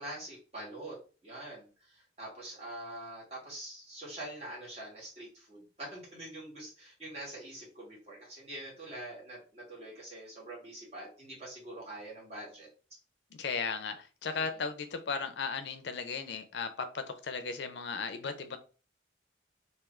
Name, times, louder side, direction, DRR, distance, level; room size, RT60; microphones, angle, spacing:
voice 1, 0.0-12.7 14.4-14.6, right 1 dB, 35° right, -5 dB, 1.8 m, -45 dB
voice 2, 13.3-18.6, left 5 dB, 65° left, 9 dB, 0.5 m, -36 dB
3.2 x 2.7 x 3.6 m, 0.36 s
head